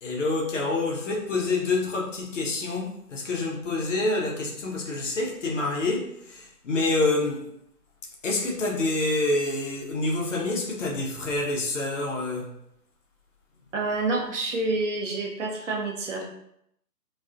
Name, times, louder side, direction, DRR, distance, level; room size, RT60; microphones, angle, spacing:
voice 1, 0.0-7.5 8.2-12.6, left 2 dB, 50° left, -1 dB, 0.7 m, -27 dB
voice 2, 13.7-16.2, right 2 dB, 50° right, -1 dB, 0.6 m, -28 dB
2.3 x 2.2 x 2.4 m, 0.75 s
figure-of-eight pair, 140°, 47 cm